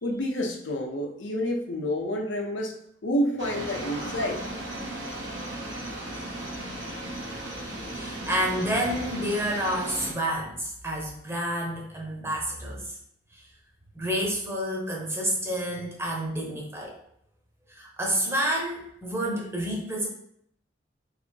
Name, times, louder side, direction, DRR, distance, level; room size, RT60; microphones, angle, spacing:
voice 1, 0.0-2.8 3.0-4.4, equal, 85° left, 1 dB, 0.7 m, -29 dB
sound 1, 3.4-10.1, right 1 dB, 80° right, 1.1 m, -36 dB
voice 2, 7.9-12.9 13.3-13.4 13.9-17.0 17.7-20.1, equal, 15° right, -2 dB, 0.9 m, -29 dB
3.3 x 2.8 x 4.4 m, 0.70 s
head